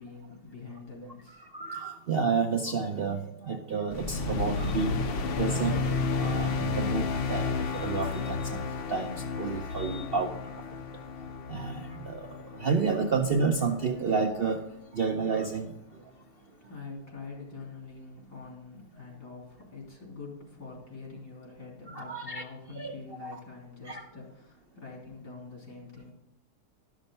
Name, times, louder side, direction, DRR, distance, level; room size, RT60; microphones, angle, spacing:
voice 1, 0.0-1.5 16.1-26.1, left 4 dB, 75° left, -2 dB, 3.6 m, -45 dB
voice 2, 1.4-5.0 5.4-5.8 6.2-10.6 11.5-14.6 14.9-15.7 21.9-22.4 22.8-22.9 23.2-23.4 23.8-24.1, right 5 dB, 55° right, 3 dB, 0.6 m, -30 dB
sound 1, 3.9-14.4, left 4 dB, 60° left, 0.6 m, -32 dB
12.0 x 6.3 x 5.3 m, 0.85 s
omnidirectional pair, 1.7 m